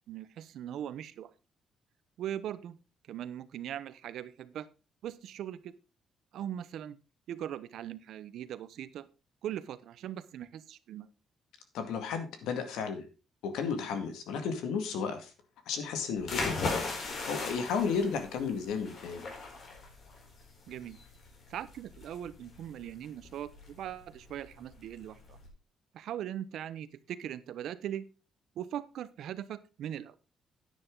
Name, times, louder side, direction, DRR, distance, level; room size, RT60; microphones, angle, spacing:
voice 1, 0.1-1.3 2.2-2.8 3.1-4.7 5.0-5.7 6.3-7.0 7.3-9.1 9.4-11.1 20.7-21.0 21.5-25.4 25.9-28.1 28.6-30.1, right 10 dB, 75° right, 15 dB, 0.9 m, -40 dB
voice 2, 11.7-13.1 13.4-15.3 15.7-19.2, left 6 dB, 90° left, 7 dB, 2.1 m, -33 dB
sound 1, 16.2-25.5, left 3 dB, 60° left, 4.2 m, -39 dB
10.0 x 9.6 x 3.9 m, 0.31 s
cardioid pair, 90°, 0 cm